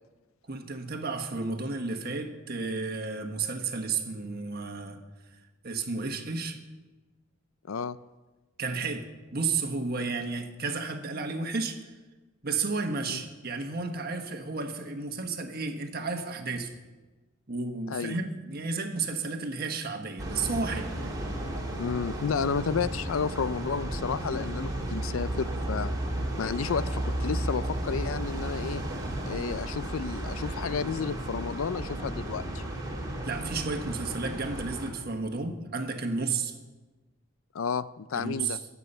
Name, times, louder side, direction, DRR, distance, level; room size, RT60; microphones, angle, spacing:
voice 1, 0.5-5.0 5.6-6.6 8.6-9.1 9.3-11.8 12.4-16.7 17.5-20.9 33.0-36.5 38.1-38.6, right 4 dB, 50° right, 5 dB, 1.4 m, -32 dB
sound 1, 20.2-34.9, right 1 dB, 20° right, 2.6 m, -33 dB
voice 2, 21.8-25.9 26.4-28.8 29.3-32.6 37.5-38.6, left 6 dB, 85° left, 16 dB, 0.5 m, -31 dB
22.0 x 8.4 x 5.6 m, 1.2 s
head